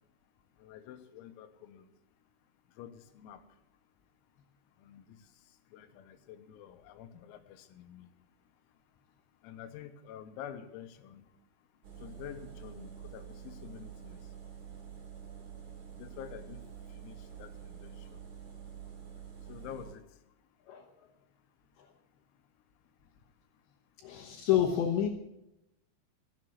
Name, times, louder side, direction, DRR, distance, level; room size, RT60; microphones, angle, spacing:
voice 1, 0.6-1.9 2.8-3.4 4.8-5.3 5.7-8.1 9.4-11.3 12.0-14.2 16.0-16.6 17.0-18.2 19.5-20.1, left 9 dB, 90° left, 8 dB, 3.8 m, -48 dB
sound 1, 11.8-19.9, right 8 dB, 45° right, 3.3 m, -48 dB
voice 2, 24.0-25.1, left 10 dB, 70° left, 3 dB, 3.0 m, -29 dB
15.5 x 7.5 x 9.3 m, 0.86 s
omnidirectional pair, 6.0 m